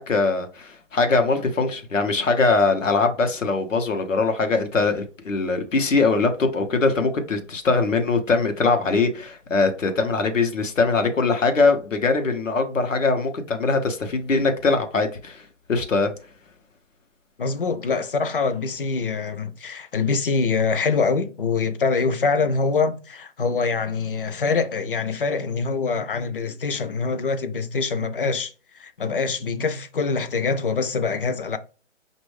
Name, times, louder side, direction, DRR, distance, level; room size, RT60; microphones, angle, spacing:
voice 1, 0.0-15.4 15.7-16.1, left 3 dB, 90° left, 1.1 m, -22 dB
voice 2, 17.4-31.6, left 4 dB, 45° left, 0.5 m, -24 dB
5.4 x 2.6 x 3.2 m
hypercardioid pair, 155°, 37 cm